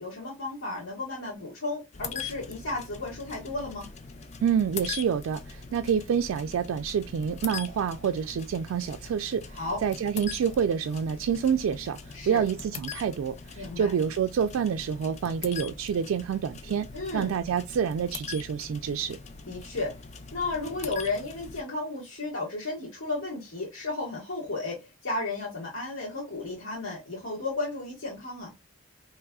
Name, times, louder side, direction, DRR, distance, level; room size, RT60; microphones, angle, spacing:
voice 1, 0.0-3.9 9.5-9.8 12.1-12.4 13.6-13.9 16.9-17.3 19.5-19.9 20.3-28.5, left 2 dB, 80° left, 1.4 m, -33 dB
sound 1, 1.9-21.6, left 5 dB, 35° left, 0.3 m, -42 dB
voice 2, 4.4-16.9 17.1-19.2, right 7 dB, 85° right, 0.3 m, -28 dB
4.7 x 3.0 x 2.3 m
head